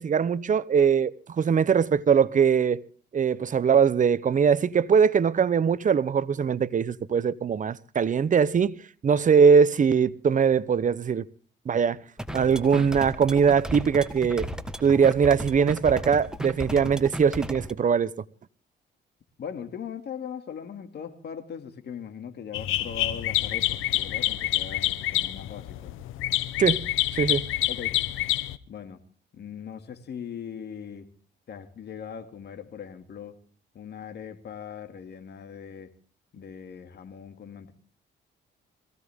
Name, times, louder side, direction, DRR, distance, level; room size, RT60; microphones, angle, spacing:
voice 1, 0.0-2.8 3.1-11.2 11.7-12.0 12.3-14.5 14.8-18.1 26.6-26.8 27.1-27.5, right 6 dB, 40° right, 0.8 m, -21 dB
sound 1, 12.2-17.7, equal, 5° right, 1.6 m, -35 dB
voice 2, 19.4-25.9 27.7-28.0 28.7-29.0 29.3-31.1 31.5-33.4 33.7-35.9 36.3-37.7, left 7 dB, 55° left, 2.5 m, -40 dB
sound 2, 22.5-28.6, left 14 dB, 90° left, 0.9 m, -27 dB
22.0 x 16.0 x 3.6 m
cardioid pair, 90°, 20 cm